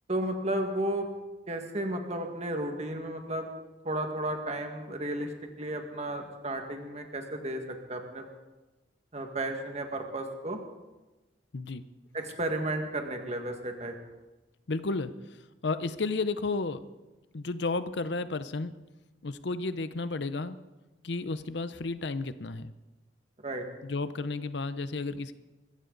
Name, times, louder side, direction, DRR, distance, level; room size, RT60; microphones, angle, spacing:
voice 1, 0.1-1.1 1.5-3.5 3.8-5.3 5.6-8.2 9.1-10.6 12.1-13.9 23.4-23.6, right 1 dB, 35° right, 4 dB, 1.8 m, -33 dB
voice 2, 11.5-11.8 14.7-16.8 17.3-18.7 19.2-20.6 21.0-22.7 23.8-25.3, left 3 dB, 70° left, 13 dB, 0.7 m, -32 dB
24.5 x 14.5 x 4.0 m, 1.1 s
head